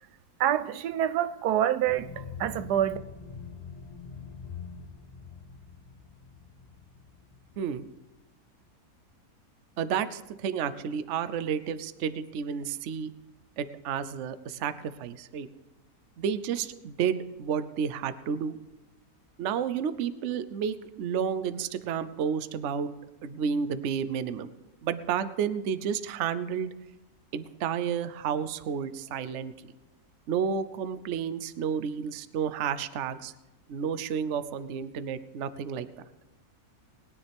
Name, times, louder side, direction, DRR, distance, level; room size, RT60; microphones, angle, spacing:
voice 1, 0.4-3.0, right 11 dB, 85° right, 1.2 m, -27 dB
sound 1, 1.9-7.8, left 5 dB, 30° left, 0.9 m, -44 dB
voice 2, 9.8-13.1 13.6-15.5 16.2-18.6 19.4-22.9 23.2-24.5 24.8-26.7 27.3-29.5 30.3-33.3 33.7-35.9, right 7 dB, 60° right, 0.9 m, -31 dB
20.5 x 9.7 x 3.5 m
omnidirectional pair, 1.7 m